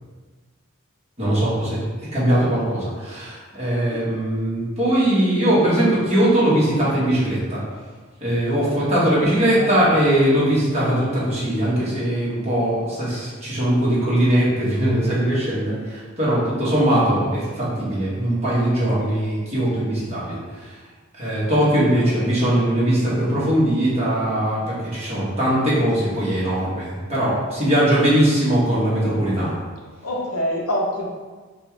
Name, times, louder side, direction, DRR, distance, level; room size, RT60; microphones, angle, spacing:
voice 1, 1.2-1.8 2.1-7.6 8.2-20.4 21.2-29.5, right 1 dB, 30° right, -9 dB, 1.5 m, -20 dB
voice 2, 3.6-4.1 9.5-9.9 21.4-22.1 30.0-31.1, equal, 85° left, -1 dB, 0.8 m, -28 dB
5.3 x 2.4 x 3.2 m, 1.4 s
head